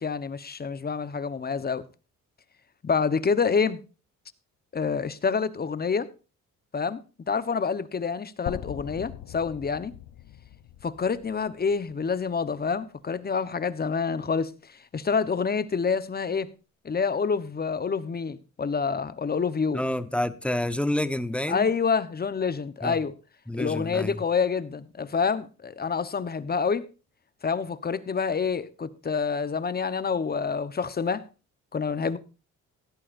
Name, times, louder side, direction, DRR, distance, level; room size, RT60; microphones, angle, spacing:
voice 1, 0.0-1.8 2.8-3.8 4.7-6.1 6.7-9.9 10.8-16.5 16.8-19.8 21.5-23.1 23.5-26.9 27.4-31.3 31.7-32.2, left 5 dB, 30° left, 1.1 m, -27 dB
sound 1, 8.5-12.5, left 11 dB, 75° left, 1.0 m, -41 dB
voice 2, 19.7-21.7 22.8-23.0 23.5-24.2, left 1 dB, 5° left, 1.1 m, -28 dB
16.5 x 12.5 x 2.7 m
cardioid pair, 90°, 30 cm